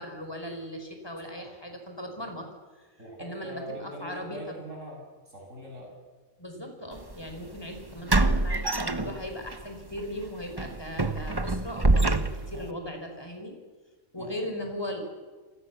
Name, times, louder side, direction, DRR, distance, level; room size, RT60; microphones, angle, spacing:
voice 1, 0.0-2.5 2.8-2.9 3.2-4.5 6.4-13.5 14.1-15.0, left 1 dB, 15° left, 4 dB, 5.1 m, -38 dB
voice 2, 3.0-5.9 12.5-12.7 14.2-14.7, right 1 dB, 60° right, -1 dB, 8.0 m, -42 dB
sound 1, 7.0-7.1 8.1-9.6 9.9-10.1 10.6-12.7, right 2 dB, 20° right, 1.1 m, -25 dB
28.0 x 24.5 x 7.3 m, 1.3 s
omnidirectional pair, 1.5 m